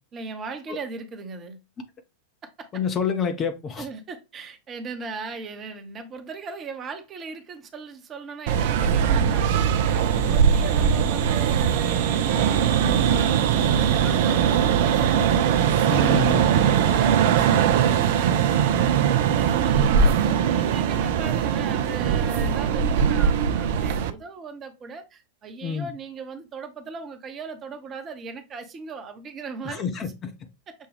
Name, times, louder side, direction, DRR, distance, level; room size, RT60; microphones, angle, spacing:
voice 1, 0.1-1.6 2.4-2.7 3.8-30.1 30.7-30.8, right 4 dB, 25° right, 0.8 m, -38 dB
voice 2, 2.7-3.8 15.8-16.4 25.6-25.9 29.6-30.1, left 6 dB, 25° left, 0.6 m, -27 dB
sound 1, 8.5-24.1, right 8 dB, 55° right, 0.4 m, -21 dB
6.3 x 2.2 x 3.2 m
figure-of-eight pair, 90°, 0 cm